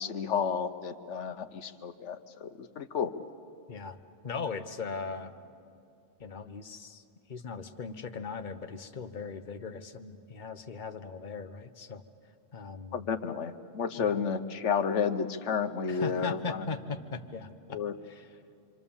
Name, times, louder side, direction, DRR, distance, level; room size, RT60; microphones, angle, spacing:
voice 1, 0.0-3.1 12.9-16.6 17.7-17.9, left 6 dB, 80° left, 10 dB, 1.3 m, -31 dB
voice 2, 3.7-5.3 6.2-7.0 7.3-12.0 12.5-13.1 14.0-14.2 15.9-17.8 18.0-18.4, left 4 dB, 45° left, 8 dB, 1.1 m, -39 dB
26.5 x 26.0 x 7.2 m, 2.5 s
omnidirectional pair, 1.2 m